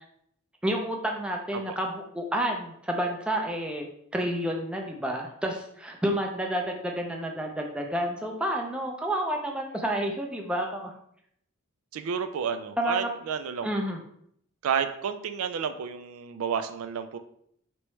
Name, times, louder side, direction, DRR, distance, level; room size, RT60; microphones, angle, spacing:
voice 1, 0.6-3.9 4.1-10.9 12.8-13.1 13.6-14.0, right 1 dB, 5° right, 1 dB, 0.4 m, -30 dB
voice 2, 11.9-13.7 14.6-17.2, right 7 dB, 75° right, 9 dB, 0.3 m, -31 dB
4.5 x 3.0 x 3.1 m, 0.69 s
head